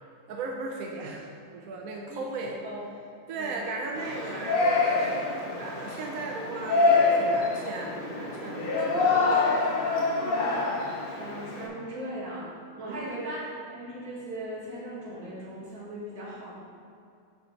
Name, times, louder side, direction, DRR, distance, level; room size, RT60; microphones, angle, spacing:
voice 1, 0.3-2.5 3.3-9.3 12.7-13.0, right 3 dB, 65° right, 0 dB, 0.9 m, -37 dB
voice 2, 2.1-2.8 3.4-3.5 11.1-12.5 12.8-16.5, right 1 dB, 45° right, -7 dB, 2.4 m, -38 dB
Yell, 4.0-11.7, left 3 dB, 50° left, 0.7 m, -26 dB
8.4 x 5.1 x 4.5 m, 2.5 s
omnidirectional pair, 2.2 m